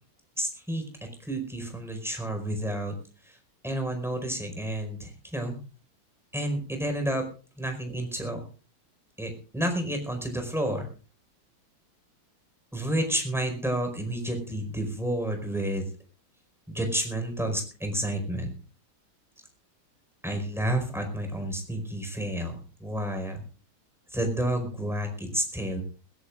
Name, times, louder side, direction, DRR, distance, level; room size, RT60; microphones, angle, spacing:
voice 1, 0.4-0.8 1.2-2.9 3.2-3.4 3.6-5.6 6.3-7.3 7.6-8.4 9.2-10.9 12.7-15.8 16.7-18.5 20.2-23.4 24.1-25.8, right 1 dB, ahead, 4 dB, 4.7 m, -30 dB
21.0 x 18.0 x 2.5 m, 0.37 s
omnidirectional pair, 2.3 m